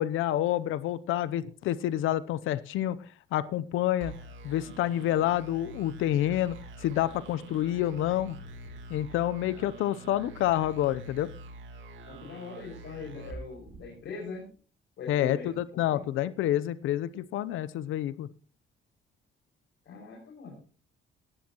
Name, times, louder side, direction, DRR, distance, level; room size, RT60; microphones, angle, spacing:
voice 1, 0.0-4.1 4.4-8.4 8.9-11.3 15.1-18.3, left 13 dB, 85° left, 17 dB, 0.7 m, -28 dB
sound 1, 4.0-14.3, right 2 dB, 75° right, 3.1 m, -46 dB
voice 2, 12.1-14.4 15.0-16.0 19.9-20.5, left 4 dB, 65° left, -1 dB, 5.7 m, -42 dB
18.0 x 9.8 x 2.9 m, 0.39 s
cardioid pair, 90°, 20 cm